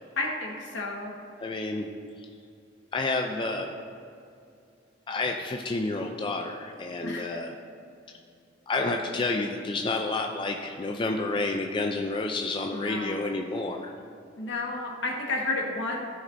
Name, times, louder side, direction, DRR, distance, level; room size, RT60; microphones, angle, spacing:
voice 1, 0.2-1.1 7.0-7.2 12.7-13.2 14.4-16.0, left 2 dB, 75° left, -1 dB, 1.5 m, -31 dB
voice 2, 1.4-1.9 2.9-3.7 5.1-7.5 8.7-13.9, left 3 dB, 25° left, 2 dB, 0.4 m, -29 dB
14.5 x 5.3 x 2.6 m, 2.5 s
head